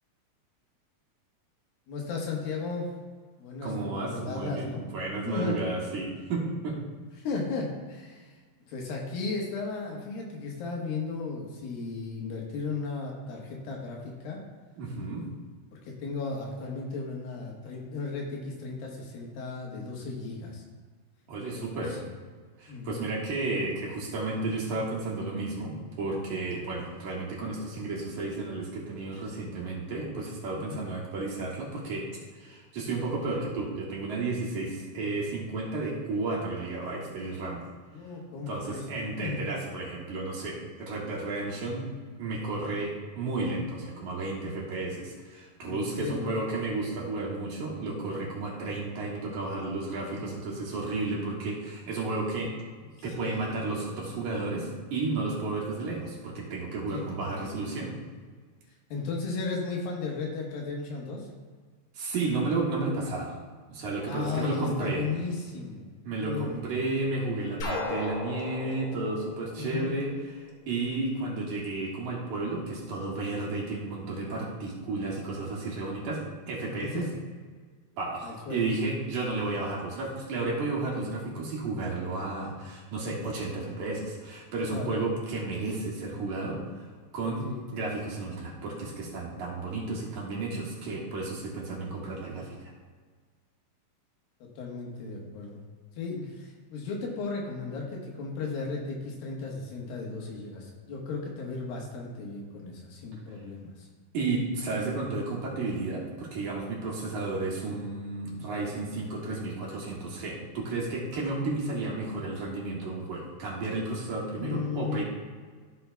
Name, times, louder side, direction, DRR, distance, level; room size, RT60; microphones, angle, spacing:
voice 1, 1.9-2.9 3.4-4.8 5.1-5.6 7.2-8.4 8.7-14.4 15.7-20.6 21.5-22.1 22.7-23.1 30.6-30.8 37.9-38.8 39.2-39.4 42.8-42.9 45.6-46.4 53.1-54.4 56.9-57.6 58.9-61.3 64.0-65.9 66.2-66.6 69.6-69.9 76.8-77.1 78.2-78.7 84.7-84.9 87.4-87.6 94.4-95.6 96.0-103.9 114.3-115.0, left 4 dB, 80° left, -1 dB, 3.0 m, -35 dB
voice 2, 3.6-6.8 14.8-15.2 21.3-22.0 22.6-32.1 32.3-37.6 38.5-41.9 42.2-52.5 53.0-57.9 61.9-63.4 63.7-65.0 66.0-76.2 76.5-77.1 78.0-86.6 87.1-87.5 87.7-92.7 104.1-115.0, right 3 dB, 60° right, -4 dB, 2.8 m, -32 dB
sound 1, 67.6-70.4, left 3 dB, 60° left, 2.2 m, -36 dB
15.0 x 5.7 x 2.3 m, 1.5 s
omnidirectional pair, 4.2 m